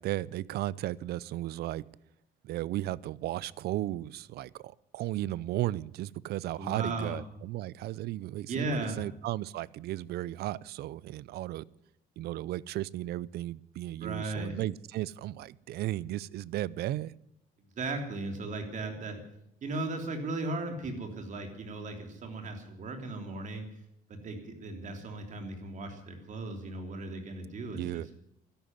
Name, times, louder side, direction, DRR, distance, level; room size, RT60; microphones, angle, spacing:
voice 1, 0.0-1.8 2.4-8.7 9.0-11.6 12.2-17.1 27.7-28.1, right 15 dB, 70° right, 23 dB, 0.6 m, -35 dB
voice 2, 6.6-7.2 8.5-9.0 14.0-14.6 17.8-19.2 19.6-23.7 24.1-28.0, right 2 dB, 45° right, 6 dB, 3.3 m, -36 dB
13.0 x 11.5 x 9.4 m, 0.78 s
cardioid pair, 110°, 17 cm